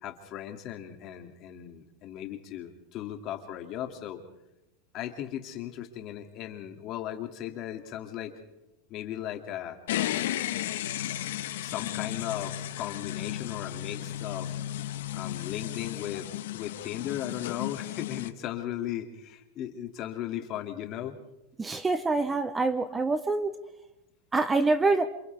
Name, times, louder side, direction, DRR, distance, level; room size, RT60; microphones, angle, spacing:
voice 1, 0.0-4.2 4.9-8.4 8.9-9.8 11.6-14.5 15.1-21.2, left 11 dB, 40° left, 5 dB, 2.5 m, -37 dB
sound 1, 9.9-18.3, left 13 dB, 85° left, 1.3 m, -34 dB
voice 2, 21.6-23.6 24.3-25.1, right 3 dB, 10° right, 12 dB, 0.8 m, -26 dB
28.5 x 27.5 x 3.5 m, 0.88 s
supercardioid pair, 150°, 0 cm